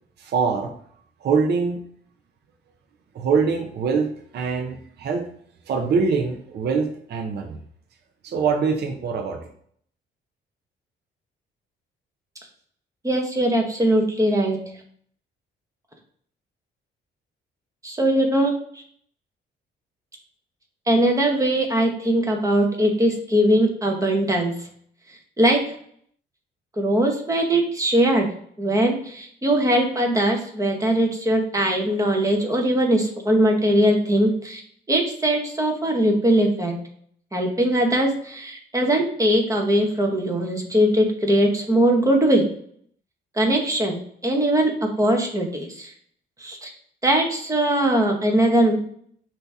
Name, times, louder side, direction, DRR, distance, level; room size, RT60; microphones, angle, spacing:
voice 1, 0.2-0.7 1.2-1.8 3.1-5.3 5.7-7.6 8.2-9.5, right 5 dB, 55° right, 4 dB, 0.6 m, -24 dB
voice 2, 13.0-14.6 17.8-18.5 20.9-24.5 25.4-25.6 26.8-28.3 28.6-34.6 34.9-36.7 37.3-42.5 43.3-45.9 46.4-46.7 47.0-48.8, right 1 dB, 15° right, 2 dB, 1.2 m, -20 dB
5.3 x 2.9 x 3.5 m, 0.62 s
cardioid pair, 90°, 20 cm